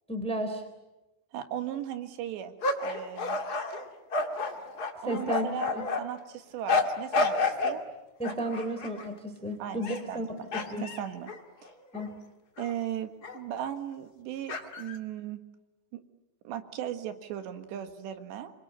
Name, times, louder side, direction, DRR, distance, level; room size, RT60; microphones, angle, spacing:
voice 1, 0.1-0.6 5.1-5.5 5.7-5.9 8.2-10.9 11.9-12.2, right 1 dB, ahead, 7 dB, 2.7 m, -33 dB
voice 2, 1.3-2.5 2.8-3.4 5.0-7.9 9.6-9.8 10.1-10.5 10.8-11.3 12.6-15.4 15.9-16.0 16.5-18.5, right 10 dB, 75° right, 8 dB, 3.8 m, -37 dB
sound 1, 2.6-6.0 6.7-7.8 8.2-9.0 9.7-10.2 10.5-12.1 12.6-12.7 13.2-13.4 14.5-15.0, left 3 dB, 45° left, 1.2 m, -30 dB
28.0 x 23.5 x 8.9 m, 1.0 s
omnidirectional pair, 5.2 m